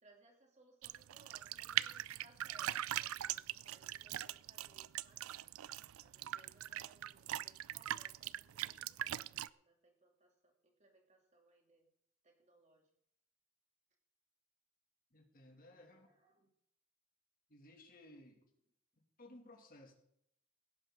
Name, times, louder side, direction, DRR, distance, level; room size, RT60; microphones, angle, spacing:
voice 1, 0.0-5.5 6.0-11.9 12.2-12.9 15.5-16.5, right 2 dB, 35° right, 2 dB, 3.0 m, -68 dB
sound 1, 0.8-9.5, right 13 dB, 85° right, 0.4 m, -41 dB
voice 2, 15.1-16.1 17.5-18.4 19.0-19.9, left 1 dB, 40° left, 3 dB, 2.5 m, -59 dB
17.5 x 11.0 x 3.8 m, 0.71 s
head